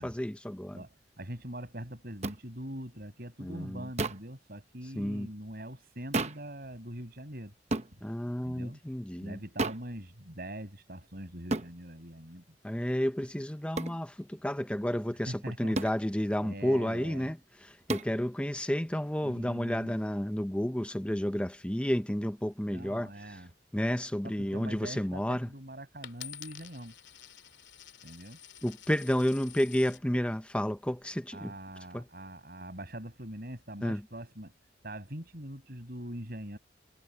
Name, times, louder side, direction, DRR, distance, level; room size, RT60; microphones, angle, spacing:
voice 1, 0.0-0.8 3.4-3.9 5.0-5.3 8.0-9.4 12.6-23.4 23.7-25.5 28.6-31.5 31.9-32.0 33.8-34.0, equal, 5° left, 0.6 m, -31 dB
voice 2, 0.7-7.5 8.4-8.8 9.2-12.4 15.3-15.8 16.4-17.3 19.2-20.0 22.7-23.5 24.2-26.9 28.0-28.4 31.3-34.5 34.8-36.6, right 1 dB, 55° right, 7.5 m, -43 dB
sound 1, 2.2-2.4 4.0-4.3 6.1-6.5 7.7-7.9 9.6-9.9 11.5-11.7 13.8-14.0 15.7-16.0 17.9-18.1, right 2 dB, 35° right, 0.9 m, -32 dB
Coin (dropping), 26.0-30.0 30.7-31.2, left 10 dB, 80° left, 2.2 m, -49 dB
head